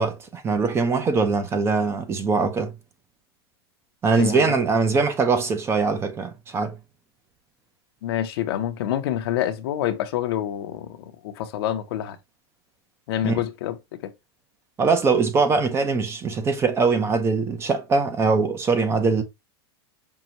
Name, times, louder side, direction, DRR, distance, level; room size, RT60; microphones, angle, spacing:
voice 1, 0.0-2.7 4.0-6.8 13.2-13.4 14.8-19.2, right 4 dB, 20° right, 0.6 m, -22 dB
voice 2, 4.1-4.5 8.0-10.9 11.2-12.2 13.1-14.1, left 11 dB, 65° left, 0.7 m, -27 dB
5.4 x 2.3 x 2.9 m
supercardioid pair, 135°, 14 cm